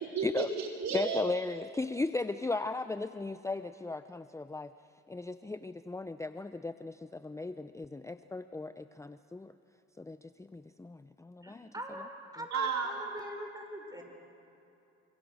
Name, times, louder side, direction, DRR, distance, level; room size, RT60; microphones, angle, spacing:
voice 1, 0.0-1.2 12.5-13.0, right 5 dB, 60° right, 1 dB, 4.4 m, -33 dB
voice 2, 0.9-4.7 5.1-9.5 10.0-11.7, left 3 dB, 10° left, 11 dB, 0.7 m, -36 dB
voice 3, 11.4-14.0, right 1 dB, 10° right, 3 dB, 6.2 m, -43 dB
29.5 x 25.5 x 6.5 m, 2.8 s
supercardioid pair, 75°, 31 cm